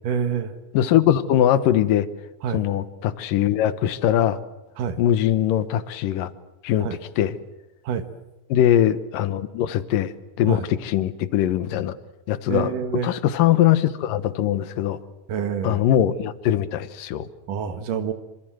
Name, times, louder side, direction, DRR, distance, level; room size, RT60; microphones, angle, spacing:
voice 1, 0.0-0.5 2.4-2.6 4.8-5.0 6.8-7.0 7.8-8.1 10.5-10.7 12.5-13.1 15.3-15.8 17.5-18.1, right 7 dB, 75° right, 9 dB, 3.0 m, -27 dB
voice 2, 0.7-2.1 2.5-4.4 5.0-6.3 6.6-6.9 7.2-7.3 8.5-10.1 10.4-12.0 12.3-12.7 13.0-15.0 15.6-17.3, left 11 dB, 80° left, 14 dB, 2.8 m, -21 dB
26.5 x 25.5 x 7.7 m, 0.99 s
omnidirectional pair, 3.8 m